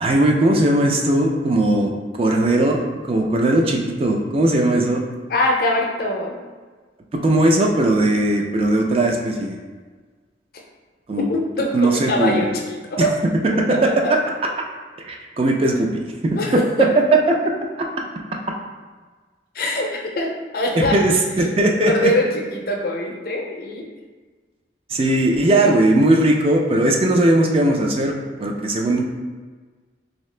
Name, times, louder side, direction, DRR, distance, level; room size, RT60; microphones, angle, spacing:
voice 1, 0.0-5.0 7.2-9.6 11.1-11.3 11.7-12.6 13.0-13.1 13.6-13.7 14.1-14.2 15.0-15.9 16.2-16.6 17.3-17.4 20.7-22.1 24.9-29.1, right 1 dB, 30° right, 1 dB, 0.4 m, -18 dB
voice 2, 5.3-6.4 11.2-13.1 13.5-14.1 16.3-16.9 19.5-21.0 21.8-23.8, left 1 dB, 55° left, 0 dB, 0.5 m, -23 dB
3.2 x 2.8 x 3.2 m, 1.4 s
head